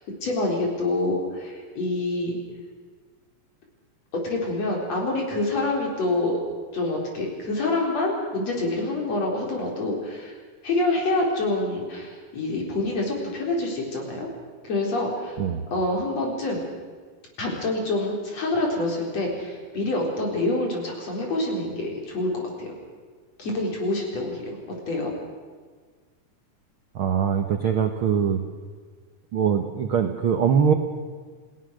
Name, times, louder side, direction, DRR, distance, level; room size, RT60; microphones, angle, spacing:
voice 1, 0.2-2.4 4.2-6.4 6.7-10.4 10.6-14.3 14.6-15.4 15.7-16.6 17.4-22.7 23.4-24.6 24.9-25.1, left 2 dB, 55° left, -1 dB, 5.2 m, -26 dB
voice 2, 26.9-28.4 29.3-30.7, right 7 dB, 60° right, 5 dB, 1.4 m, -22 dB
28.5 x 17.5 x 6.4 m, 1.5 s
omnidirectional pair, 3.6 m